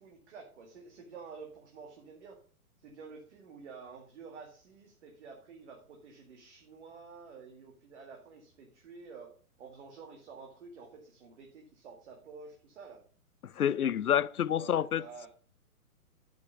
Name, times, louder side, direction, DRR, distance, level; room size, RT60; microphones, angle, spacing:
voice 1, 0.0-2.4 2.8-9.3 9.6-13.0 14.5-15.3, right 5 dB, 50° right, 2.1 m, -50 dB
voice 2, 13.4-15.0, left 9 dB, 80° left, 0.6 m, -28 dB
11.5 x 5.6 x 5.3 m
figure-of-eight pair, 120°, 44 cm